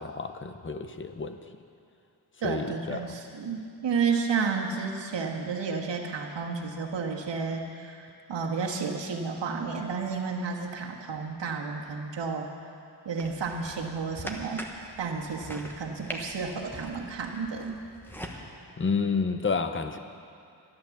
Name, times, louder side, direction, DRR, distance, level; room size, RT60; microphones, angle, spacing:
voice 1, 0.0-1.4 2.4-3.0 18.8-20.0, left 4 dB, 30° left, 8 dB, 0.6 m, -30 dB
voice 2, 2.4-12.5 13.0-14.6 15.0-17.8, right 5 dB, 75° right, -1 dB, 1.5 m, -31 dB
sound 1, 13.2-18.4, equal, 5° left, 1.0 m, -42 dB
12.5 x 11.5 x 7.1 m, 2.6 s
wide cardioid pair, 175°, 43 cm